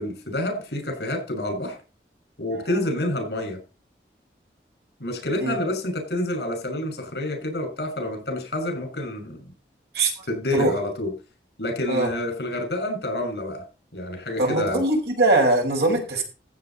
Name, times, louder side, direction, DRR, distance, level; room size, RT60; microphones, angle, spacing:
voice 1, 0.0-1.8 2.4-3.6 5.0-9.4 10.3-11.1 11.6-13.6 13.9-14.8, left 1 dB, 70° left, 4 dB, 6.0 m, -28 dB
voice 2, 14.4-16.2, right 2 dB, 75° right, 2 dB, 5.5 m, -21 dB
15.0 x 8.4 x 4.3 m, 0.33 s
head